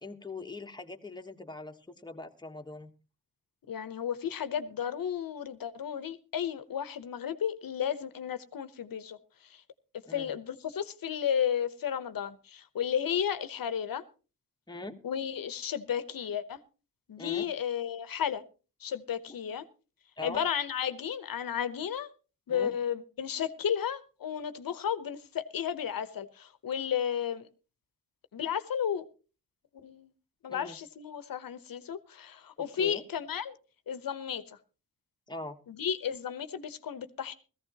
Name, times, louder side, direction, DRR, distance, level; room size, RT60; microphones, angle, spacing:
voice 1, 0.0-2.9 10.0-10.3 14.7-15.0 17.2-17.5 20.2-20.4 22.5-22.7 30.5-30.8 32.6-33.0 35.3-35.6, left 2 dB, 10° left, 1.2 m, -42 dB
voice 2, 3.7-9.2 9.5-9.6 10.1-14.0 15.0-16.6 17.1-18.4 18.8-19.6 20.2-22.1 22.5-27.5 28.3-29.0 29.8-30.1 30.4-33.6 33.9-34.4 35.7-37.3, left 8 dB, 80° left, 1.0 m, -33 dB
18.0 x 14.5 x 2.9 m
wide cardioid pair, 95°, 34 cm